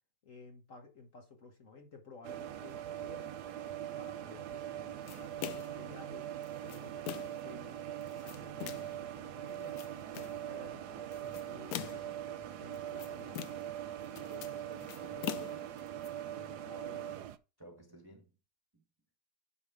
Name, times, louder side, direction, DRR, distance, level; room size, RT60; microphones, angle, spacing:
voice 1, 0.2-3.4 4.0-6.3 6.6-7.8 8.2-9.8 10.1-13.5 16.3-17.2, left 4 dB, 50° left, 1.4 m, -54 dB
sound 1, 2.2-17.4, right 11 dB, 70° right, 1.1 m, -42 dB
sound 2, 5.1-5.8 6.4-7.5 8.0-9.0 9.5-10.4 11.1-12.2 12.7-13.8 14.0-16.1, left 12 dB, 70° left, 0.9 m, -43 dB
voice 2, 14.1-15.8 17.6-18.4 18.7-18.8, right 1 dB, 15° right, 1.4 m, -54 dB
9.7 x 3.6 x 5.0 m
omnidirectional pair, 2.0 m